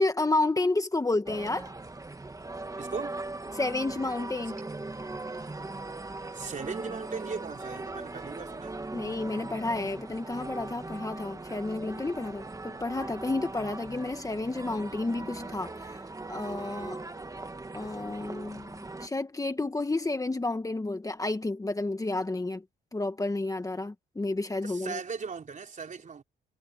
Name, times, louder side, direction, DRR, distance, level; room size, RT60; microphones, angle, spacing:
voice 1, 0.0-1.7 3.5-4.6 8.9-16.0 16.3-17.0 17.7-22.6 22.9-25.0, left 2 dB, 15° left, 1.6 m, -31 dB
sound 1, 1.3-19.1, right 2 dB, 15° right, 1.7 m, -40 dB
voice 2, 2.8-3.2 6.3-8.8 24.6-26.2, right 5 dB, 40° right, 4.3 m, -38 dB
cardioid pair, 90°, 20 cm